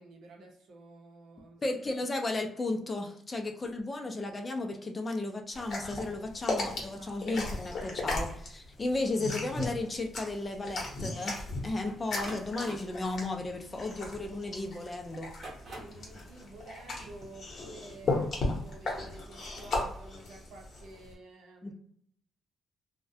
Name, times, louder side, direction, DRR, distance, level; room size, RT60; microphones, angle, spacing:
voice 1, 0.0-1.6 2.1-2.3 7.0-7.2 15.5-21.7, right 2 dB, 80° right, 1 dB, 0.6 m, -51 dB
voice 2, 1.6-11.4 11.6-15.3 21.6-21.7, left 2 dB, 20° left, 3 dB, 0.4 m, -34 dB
sound 1, 5.5-21.1, left 2 dB, 45° left, 0.7 m, -36 dB
sound 2, 11.9-14.6 15.2-16.1, right 1 dB, 40° right, 0.9 m, -47 dB
2.3 x 2.1 x 2.6 m, 0.66 s
cardioid pair, 145°, 0 cm